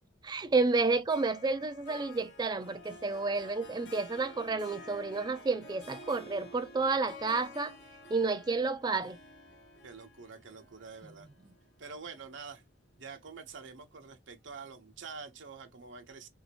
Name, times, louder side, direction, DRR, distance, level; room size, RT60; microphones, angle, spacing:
voice 1, 0.2-7.8 8.1-9.2 11.0-11.3, right 3 dB, 20° right, 0.3 m, -30 dB
Harp, 1.1-12.5, left 2 dB, 55° left, 0.9 m, -51 dB
voice 2, 9.8-11.3 11.8-12.6 13.0-16.3, right 5 dB, 60° right, 0.8 m, -46 dB
3.0 x 2.7 x 2.7 m
head